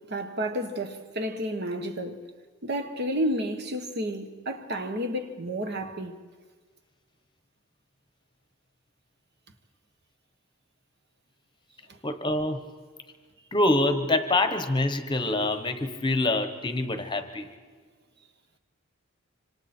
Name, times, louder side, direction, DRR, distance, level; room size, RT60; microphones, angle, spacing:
voice 1, 0.1-2.2 2.6-6.1 11.9-12.0, equal, 50° right, 1.4 m, -31 dB
voice 2, 12.0-12.6 13.5-17.5, left 2 dB, 20° left, 1.1 m, -25 dB
26.0 x 25.5 x 4.4 m
head